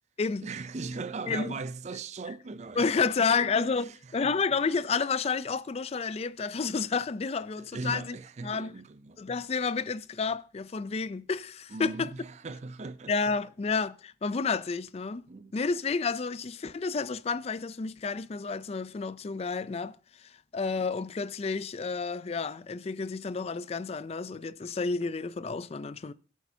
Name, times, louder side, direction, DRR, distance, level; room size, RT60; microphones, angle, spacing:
voice 1, 0.4-3.7 4.2-4.3 7.6-9.4 11.7-13.1 15.3-15.5, right 3 dB, 40° right, 0.4 m, -39 dB
voice 2, 2.8-8.2 8.4-8.7 9.2-12.1 13.1-15.2 15.5-26.1, left 4 dB, 35° left, 0.4 m, -30 dB
18.0 x 8.3 x 2.7 m
head